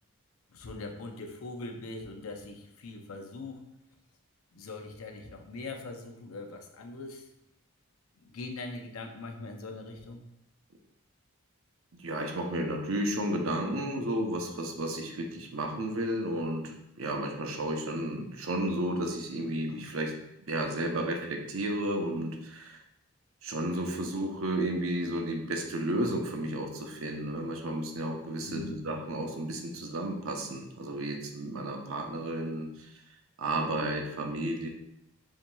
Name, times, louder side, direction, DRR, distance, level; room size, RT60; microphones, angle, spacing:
voice 1, 0.5-3.6 4.5-7.3 8.2-10.2 28.4-28.7, left 3 dB, 90° left, 4 dB, 0.6 m, -41 dB
voice 2, 11.9-20.1 20.5-22.8 23.4-32.7 33.4-34.7, right 1 dB, 80° right, 3 dB, 0.7 m, -32 dB
7.2 x 2.8 x 2.3 m, 0.82 s
head